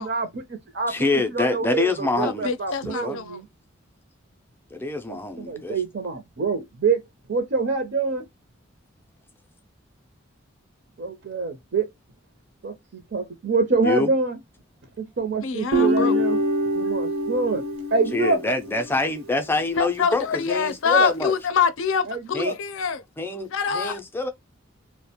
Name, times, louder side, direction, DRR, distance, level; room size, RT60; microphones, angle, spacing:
voice 1, 0.0-0.9 1.3-3.4 5.1-7.0 7.3-8.2 11.0-11.9 12.6-14.4 15.0-16.4 16.8-17.6 17.9-18.4 22.1-22.5, right 4 dB, 55° right, 0.6 m, -26 dB
voice 2, 0.9-2.5 3.0-3.2 4.7-5.8 13.8-14.1 18.1-21.3 22.3-22.5 23.2-23.5 23.7-24.3, left 3 dB, 10° left, 0.4 m, -25 dB
voice 3, 2.2-3.4 15.4-16.1 19.8-23.0 23.5-24.0, left 5 dB, 70° left, 0.4 m, -25 dB
Guitar, 15.7-19.0, equal, 85° right, 0.8 m, -25 dB
2.4 x 2.1 x 2.8 m
head